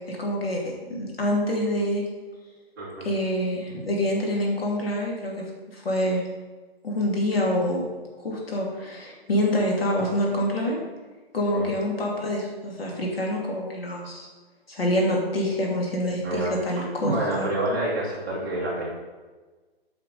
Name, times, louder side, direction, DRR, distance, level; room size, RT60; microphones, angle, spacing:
voice 1, 0.1-0.6 0.9-2.0 3.0-6.2 6.8-7.8 8.2-10.8 11.3-14.3 14.7-17.5, left 1 dB, 70° left, -1 dB, 2.8 m, -26 dB
voice 2, 2.8-3.1 11.5-11.7 16.2-18.9, right 1 dB, 20° right, -7 dB, 1.8 m, -28 dB
9.0 x 5.8 x 5.4 m, 1.3 s
hypercardioid pair, 180°, 31 cm